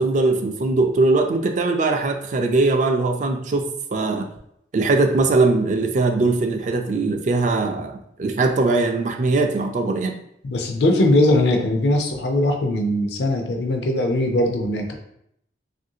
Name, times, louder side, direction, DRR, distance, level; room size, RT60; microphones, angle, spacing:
voice 1, 0.0-4.3 4.7-10.2, right 3 dB, 45° right, 4 dB, 0.3 m, -20 dB
voice 2, 10.4-14.9, left 1 dB, 70° left, 3 dB, 0.5 m, -20 dB
3.1 x 2.5 x 2.7 m, 0.73 s
head